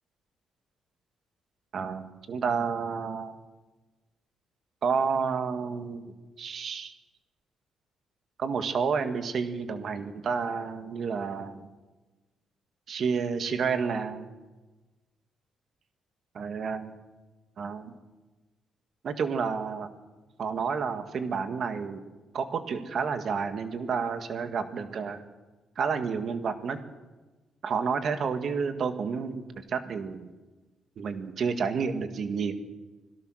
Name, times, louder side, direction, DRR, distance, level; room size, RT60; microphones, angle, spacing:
voice 1, 1.7-3.4 4.8-6.0 6.4-6.9 8.4-11.6 12.9-14.3 16.4-16.9 17.6-17.9 19.0-19.9 20.4-22.0 22.3-25.2 25.8-26.8 27.6-30.3 31.0-32.5, right 5 dB, 45° right, 8 dB, 1.9 m, -30 dB
25.0 x 17.5 x 6.4 m, 1.2 s
cardioid pair, 165°, 0 cm